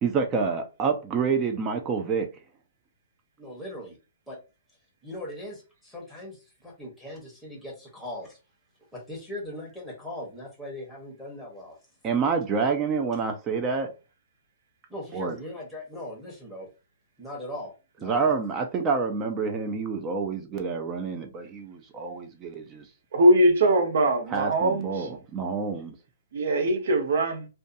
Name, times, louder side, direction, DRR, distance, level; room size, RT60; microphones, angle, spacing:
voice 1, 0.0-2.3 12.0-13.9 15.1-15.4 18.0-22.8 24.3-26.0, right 5 dB, 20° right, 0.4 m, -28 dB
voice 2, 3.4-4.0 4.3-4.4 5.0-8.4 8.9-11.8 14.9-16.7 17.2-17.7 18.0-18.4, left 1 dB, ahead, 1.0 m, -39 dB
voice 3, 23.1-25.1 26.3-27.5, right 1 dB, 65° right, 0.8 m, -21 dB
2.6 x 2.2 x 2.5 m
hypercardioid pair, 160°, 0 cm